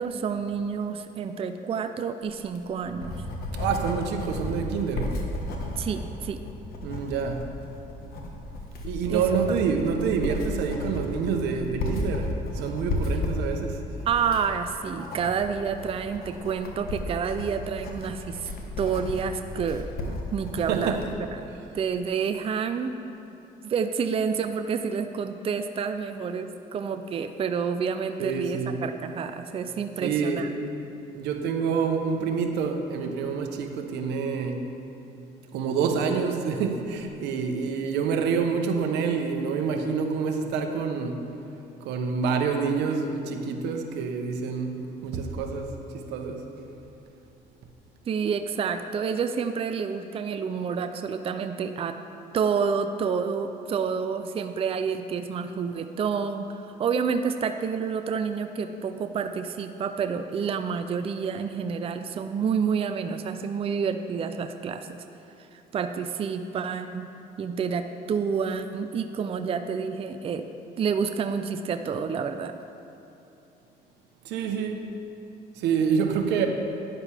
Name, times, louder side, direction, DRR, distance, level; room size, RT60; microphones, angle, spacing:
voice 1, 0.0-3.2 5.8-6.4 9.1-9.2 14.1-18.5 18.8-21.0 21.4-21.5 21.7-23.0 23.6-30.5 48.1-52.0 52.3-65.0 65.5-67.1 67.4-70.5 70.8-72.6, right 6 dB, 35° right, 8 dB, 0.5 m, -29 dB
Writing, 2.4-21.2, left 2 dB, 65° left, 1.4 m, -34 dB
voice 2, 3.6-5.1 6.8-7.5 8.8-13.8 20.7-21.0 28.2-28.8 30.0-30.5 31.1-34.7 35.5-41.2 41.8-46.5 74.2-74.9 75.6-76.5, right 6 dB, 85° right, 4 dB, 1.0 m, -27 dB
12.0 x 9.9 x 3.5 m, 3.0 s
cardioid pair, 110°, 17 cm